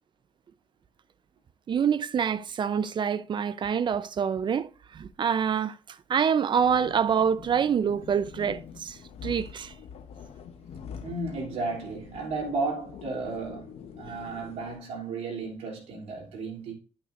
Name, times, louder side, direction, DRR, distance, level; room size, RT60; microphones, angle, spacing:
voice 1, 1.7-5.8 6.1-9.7, right 7 dB, 45° right, 0.6 m, -26 dB
sound 1, 6.6-14.8, left 7 dB, 70° left, 0.9 m, -45 dB
voice 2, 10.7-16.7, right 3 dB, 75° right, 3.0 m, -34 dB
11.0 x 5.9 x 2.6 m
cardioid pair, 75°, 11 cm